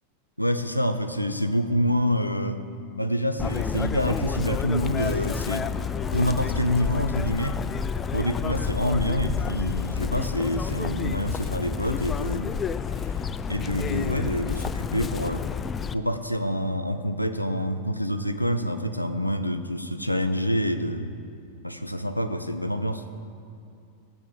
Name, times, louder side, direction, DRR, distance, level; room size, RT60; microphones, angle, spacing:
voice 1, 0.4-2.6 3.0-5.7 6.1-7.6 8.1-12.6 13.5-15.5 15.9-21.1 21.6-23.0, equal, 90° left, 8 dB, 0.5 m, -27 dB
Chirp tweet, 3.4-15.9, left 6 dB, 20° left, 0.3 m, -29 dB
14.5 x 8.6 x 3.8 m, 2.6 s
figure-of-eight pair, 90°, 0 cm